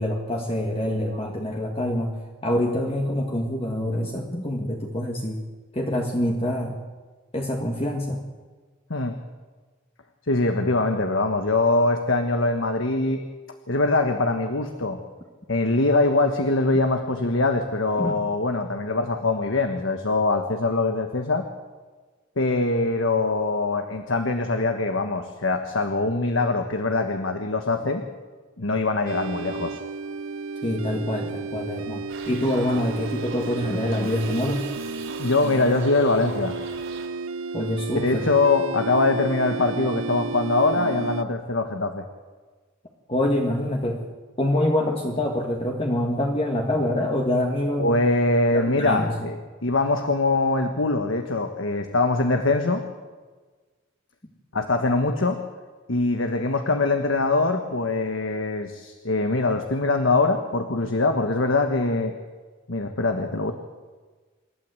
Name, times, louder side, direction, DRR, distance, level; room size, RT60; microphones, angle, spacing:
voice 1, 0.0-5.4 5.7-6.8 7.3-8.2 18.0-18.2 30.6-34.7 37.5-38.3 43.1-44.0 44.4-48.0 48.5-49.1, left 1 dB, 30° left, 0 dB, 1.8 m, -25 dB
voice 2, 10.3-13.2 13.7-15.0 15.5-21.4 22.4-28.0 28.6-29.8 35.2-36.6 37.9-42.0 47.8-49.3 49.6-52.8 54.5-55.4 55.9-62.1 62.7-63.5, left 2 dB, 75° left, 6 dB, 1.4 m, -23 dB
sound 1, 29.1-41.2, right 4 dB, 85° right, 0.7 m, -33 dB
Shout / Livestock farm animals working animals, 32.1-37.1, right 5 dB, 70° right, 3.8 m, -42 dB
27.5 x 12.5 x 7.9 m, 1.4 s
head